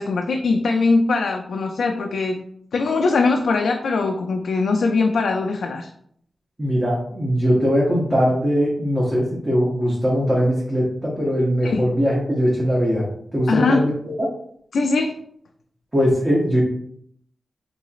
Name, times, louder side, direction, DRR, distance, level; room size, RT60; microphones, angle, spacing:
voice 1, 0.0-2.4 2.7-5.9 11.6-11.9 13.5-13.8 14.7-15.1, left 3 dB, 85° left, 2 dB, 0.3 m, -21 dB
voice 2, 6.6-13.0 13.3-13.9 14.2-14.3 15.9-16.6, equal, 20° right, -5 dB, 0.9 m, -20 dB
3.9 x 3.0 x 2.4 m, 0.66 s
wide cardioid pair, 85°, 0 cm